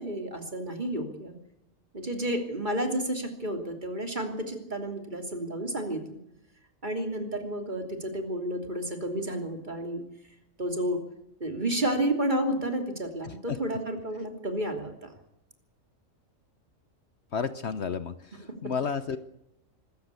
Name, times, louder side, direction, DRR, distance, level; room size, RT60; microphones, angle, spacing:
voice 1, 0.0-1.3 1.9-6.2 6.8-10.0 10.6-11.0 11.4-15.1, right 1 dB, 35° right, 5 dB, 3.2 m, -31 dB
voice 2, 17.3-18.1 18.6-19.2, left 6 dB, 55° left, 13 dB, 1.2 m, -30 dB
24.5 x 14.5 x 8.3 m, 0.84 s
omnidirectional pair, 1.4 m